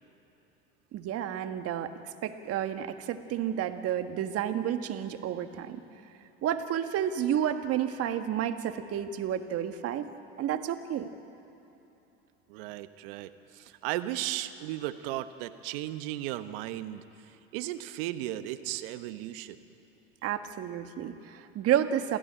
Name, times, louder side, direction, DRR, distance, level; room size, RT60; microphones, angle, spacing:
voice 1, 0.9-5.8 6.4-10.1 10.4-11.1 20.2-22.2, right 10 dB, 55° right, 8 dB, 1.7 m, -31 dB
voice 2, 12.5-17.0 17.5-19.6, right 14 dB, 75° right, 11 dB, 1.1 m, -35 dB
27.5 x 15.5 x 8.9 m, 3.0 s
hypercardioid pair, 75°, 29 cm